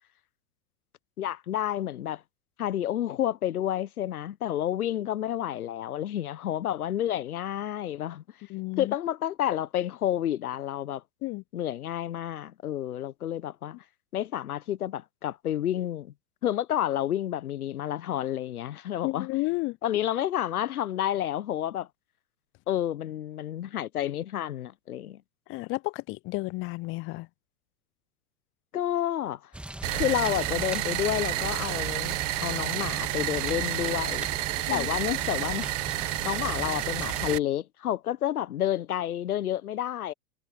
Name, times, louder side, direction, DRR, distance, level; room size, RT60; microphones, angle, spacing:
voice 1, 1.2-2.2 2.6-8.2 8.8-11.0 11.5-13.8 14.1-16.1 16.4-19.3 19.8-21.9 22.7-25.2 28.7-29.4 29.9-34.3 34.7-35.7 36.2-40.1, left 11 dB, 70° left, 1.1 m, -30 dB
voice 2, 8.5-8.9 11.2-11.4 19.0-19.8 25.5-27.3 34.7-34.9, left 22 dB, 30° left, 0.6 m, -32 dB
sound 1, 29.5-37.4, right 1 dB, ahead, 2.6 m, -39 dB
sound 2, 29.8-37.4, right 19 dB, 55° right, 0.8 m, -30 dB
figure-of-eight pair, 95°, 45 cm